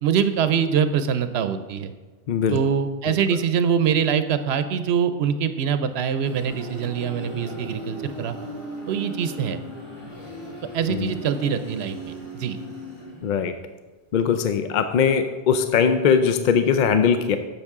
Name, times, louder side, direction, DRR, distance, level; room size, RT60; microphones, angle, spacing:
voice 1, 0.0-1.9 2.5-8.3 8.9-9.6 10.7-12.6, right 7 dB, 80° right, 10 dB, 0.8 m, -24 dB
voice 2, 2.3-2.6 3.1-3.2 10.9-11.1 13.2-13.5 14.1-17.4, left 7 dB, 60° left, 9 dB, 0.6 m, -20 dB
sound 1, 5.9-13.6, equal, 30° left, 1.8 m, -37 dB
9.8 x 7.1 x 3.6 m, 1.3 s
omnidirectional pair, 1.1 m